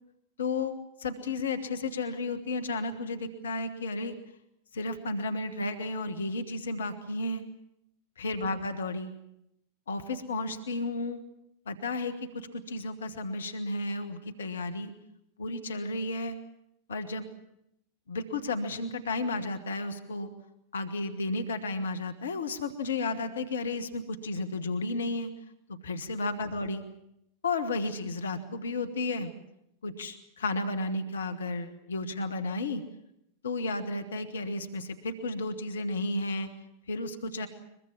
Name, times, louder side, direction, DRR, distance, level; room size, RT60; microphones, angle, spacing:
voice 1, 0.4-4.1 4.7-7.4 8.2-9.1 9.9-11.2 11.7-14.9 15.4-16.4 16.9-17.2 18.1-20.3 20.7-25.3 25.7-26.8 27.4-29.3 29.8-32.8 33.4-36.5 36.9-37.5, left 2 dB, 65° left, 9 dB, 1.5 m, -33 dB
22.5 x 22.0 x 7.4 m, 0.80 s
figure-of-eight pair, 90°, 0 cm